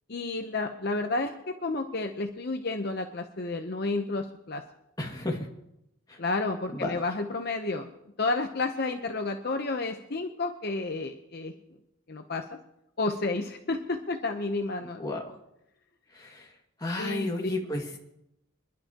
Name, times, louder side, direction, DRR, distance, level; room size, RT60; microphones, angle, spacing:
voice 1, 0.1-4.6 6.2-7.9 8.2-11.5 12.1-12.4 13.0-15.0 17.0-17.3, left 3 dB, 50° left, 5 dB, 0.8 m, -31 dB
voice 2, 5.0-5.5 6.1-6.2 6.7-6.9 15.0-15.3 16.1-16.5 16.8-18.0, left 2 dB, 20° left, -1 dB, 2.1 m, -32 dB
26.0 x 11.5 x 3.0 m, 0.83 s
head